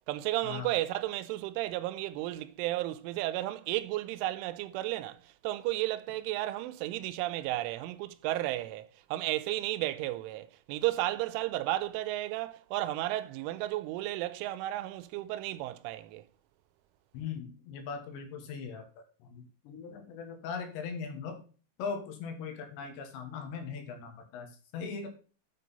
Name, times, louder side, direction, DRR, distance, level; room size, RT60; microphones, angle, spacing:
voice 1, 0.1-16.2, right 16 dB, 90° right, 3.1 m, -33 dB
voice 2, 17.1-18.9 19.2-21.4 21.8-25.1, left 6 dB, 70° left, 3.5 m, -39 dB
7.9 x 7.7 x 4.1 m
omnidirectional pair, 5.5 m